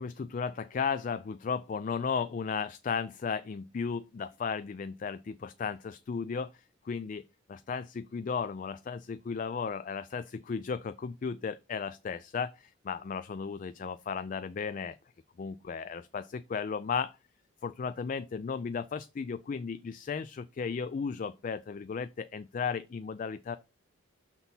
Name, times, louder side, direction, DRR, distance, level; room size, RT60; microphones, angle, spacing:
voice 1, 0.0-7.2 7.5-15.0 15.4-17.1 17.6-23.6, left 5 dB, 40° left, 0.3 m, -35 dB
6.1 x 4.0 x 5.5 m
head